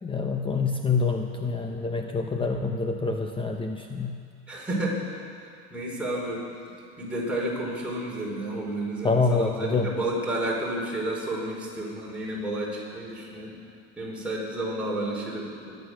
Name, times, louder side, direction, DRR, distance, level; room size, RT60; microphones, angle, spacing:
voice 1, 0.0-4.2 9.0-9.9, left 4 dB, 15° left, 4 dB, 0.9 m, -26 dB
voice 2, 4.5-5.0 5.7-6.4 7.0-13.6 14.0-15.7, right 1 dB, 5° right, -5 dB, 5.0 m, -31 dB
22.5 x 9.3 x 6.4 m, 2.4 s
supercardioid pair, 110°, 33 cm